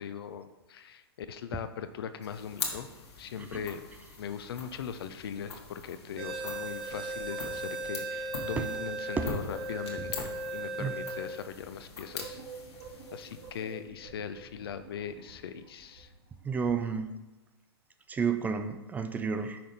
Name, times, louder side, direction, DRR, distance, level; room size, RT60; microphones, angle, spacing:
voice 1, 0.0-2.9 3.2-3.9 4.2-12.4 13.1-16.1, left 8 dB, 65° left, 11 dB, 0.5 m, -40 dB
sound 1, 2.2-13.9, left 3 dB, 85° left, 1.5 m, -43 dB
sound 2, 6.2-15.4 15.9-16.0 16.6-16.8, right 2 dB, 60° right, 2.0 m, -38 dB
voice 2, 16.4-17.2 18.1-19.6, right 5 dB, 10° right, 8 dB, 0.4 m, -31 dB
5.8 x 5.0 x 4.1 m, 1.0 s
hypercardioid pair, 120°, 13 cm